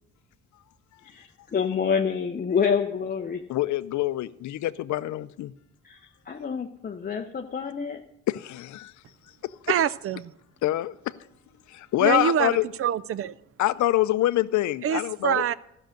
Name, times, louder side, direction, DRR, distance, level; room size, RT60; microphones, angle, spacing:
voice 1, 1.0-3.4 5.8-6.0 6.3-8.0, left 6 dB, 30° left, 3 dB, 0.6 m, -27 dB
voice 2, 3.5-5.5 8.3-8.9 10.6-10.9 11.9-12.6 13.6-15.5, left 15 dB, 70° left, 15 dB, 0.5 m, -25 dB
voice 3, 9.7-10.3 12.0-13.3 14.8-15.5, right 10 dB, 50° right, 19 dB, 0.5 m, -25 dB
13.0 x 6.4 x 6.4 m, 0.82 s
cardioid pair, 90°, 30 cm